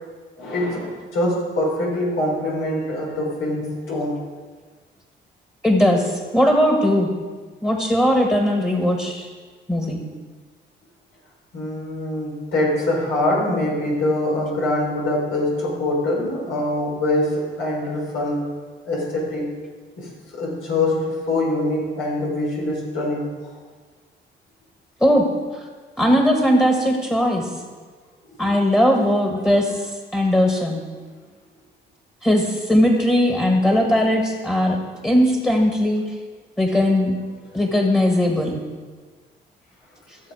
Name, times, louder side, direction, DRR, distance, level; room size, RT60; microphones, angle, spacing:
voice 1, 0.4-4.2 11.5-18.5 18.8-19.5 20.0-23.3 28.3-28.5 33.7-34.0, left 1 dB, 85° left, -3 dB, 4.3 m, -24 dB
voice 2, 5.6-7.1 7.6-9.3 9.7-10.0 25.0-25.2 26.0-27.5 28.4-29.8 30.1-30.8 32.2-34.8 35.0-36.0 36.6-37.1 37.5-38.6, equal, 10° left, 1 dB, 1.7 m, -18 dB
15.0 x 7.1 x 4.9 m, 1.4 s
cardioid pair, 90°, 20 cm